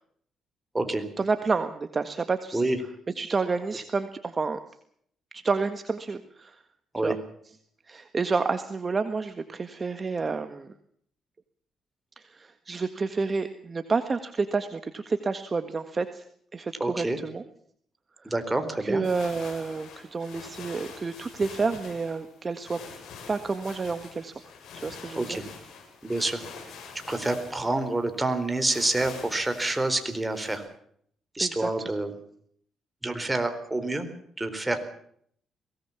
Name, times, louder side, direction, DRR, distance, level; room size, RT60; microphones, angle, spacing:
voice 1, 1.2-2.7 3.1-4.6 5.3-6.6 7.0-7.2 7.8-10.7 12.2-16.2 16.5-17.4 18.2-18.3 18.8-22.8 23.3-24.3 24.7-25.4 31.4-31.7, right 4 dB, 35° right, 9 dB, 1.6 m, -29 dB
voice 2, 16.8-17.2 18.2-19.0 25.2-25.4 26.0-26.4 27.1-30.6 31.4-32.1 33.0-34.1 34.4-34.8, right 2 dB, 15° right, 8 dB, 4.0 m, -27 dB
sound 1, 19.0-30.6, left 5 dB, 75° left, 7.2 m, -45 dB
23.0 x 18.0 x 7.3 m, 0.65 s
cardioid pair, 90°, 0 cm